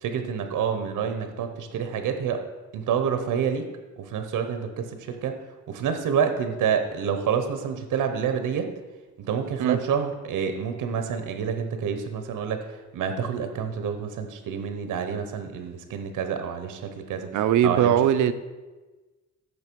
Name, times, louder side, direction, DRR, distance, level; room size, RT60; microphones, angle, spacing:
voice 1, 0.0-2.4 2.7-3.6 4.0-5.3 5.7-8.7 9.2-17.3 17.6-18.0, right 7 dB, 85° right, 7 dB, 1.0 m, -28 dB
voice 2, 17.3-18.3, right 10 dB, 70° right, 12 dB, 0.6 m, -20 dB
8.6 x 6.7 x 4.6 m, 1.2 s
cardioid pair, 135°, 31 cm